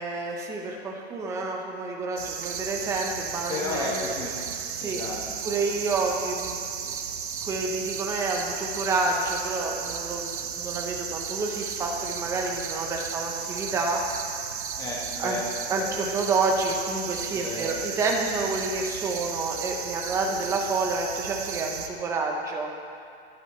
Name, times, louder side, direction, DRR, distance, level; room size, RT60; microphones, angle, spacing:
voice 1, 0.0-3.9 4.8-5.0 5.4-6.6 6.8-7.0 7.4-14.0 15.2-15.4 15.7-22.7, right 3 dB, 10° right, 1 dB, 0.8 m, -29 dB
sound 1, 2.2-21.9, right 7 dB, 50° right, 1.1 m, -34 dB
voice 2, 3.5-4.4 4.8-5.6 14.8-16.0 17.3-17.7 20.3-20.4, left 3 dB, 10° left, -4 dB, 1.4 m, -34 dB
27.0 x 9.1 x 3.2 m, 2.4 s
hypercardioid pair, 160°, 33 cm